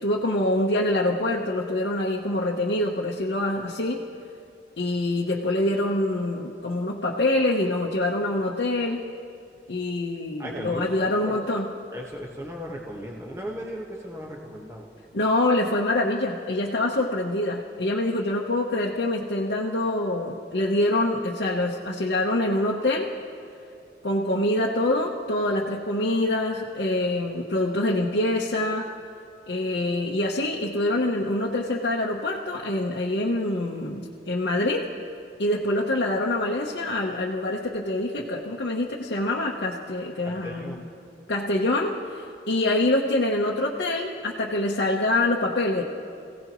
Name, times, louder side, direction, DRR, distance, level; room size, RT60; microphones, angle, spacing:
voice 1, 0.0-4.0 4.8-9.0 9.7-11.7 15.1-23.1 24.0-28.9 29.5-34.9 35.4-40.8 41.3-45.8, left 1 dB, 80° left, -3 dB, 1.0 m, -25 dB
voice 2, 10.4-11.5 11.9-14.9 40.2-40.8, equal, 15° right, -2 dB, 1.4 m, -36 dB
27.0 x 16.5 x 3.1 m, 2.5 s
head